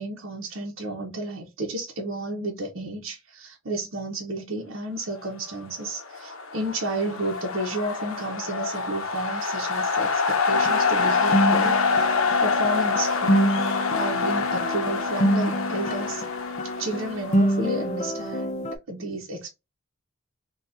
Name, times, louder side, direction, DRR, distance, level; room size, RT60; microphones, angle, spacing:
voice 1, 0.0-16.2 16.8-19.5, right 1 dB, 70° right, 0.8 m, -32 dB
sound 1, 5.9-17.8, left 4 dB, 85° left, 0.7 m, -26 dB
sound 2, 10.5-18.7, equal, 35° left, 0.5 m, -27 dB
3.8 x 2.3 x 2.5 m
head